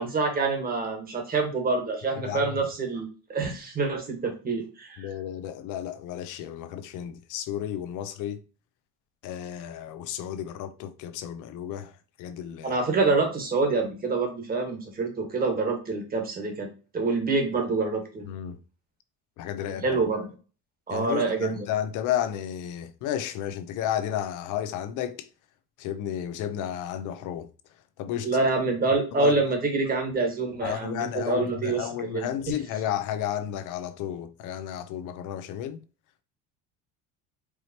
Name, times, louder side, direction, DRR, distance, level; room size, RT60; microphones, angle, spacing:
voice 1, 0.0-5.1 12.6-16.7 16.9-18.3 19.6-20.3 20.9-21.6 28.2-31.8 32.1-32.3, right 3 dB, 25° right, 1.5 m, -26 dB
voice 2, 5.0-8.4 9.2-11.9 12.2-12.7 18.2-18.6 19.4-20.0 20.9-25.3 25.8-27.5 28.0-28.3 28.9-29.3 30.6-35.8, left 10 dB, 65° left, 0.7 m, -32 dB
4.8 x 2.9 x 2.8 m
cardioid pair, 120°, 33 cm